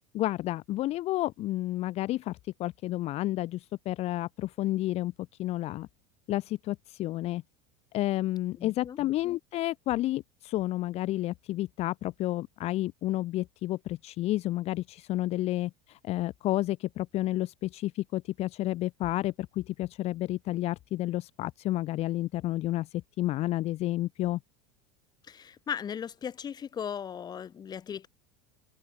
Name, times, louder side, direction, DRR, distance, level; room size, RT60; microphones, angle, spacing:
voice 1, 0.1-5.1 5.4-5.9 6.3-7.4 7.9-24.4, left 16 dB, 45° left, 1.5 m, -31 dB
voice 2, 8.6-9.0 25.2-28.1, left 8 dB, 30° left, 2.6 m, -37 dB
supercardioid pair, 115°, 14 cm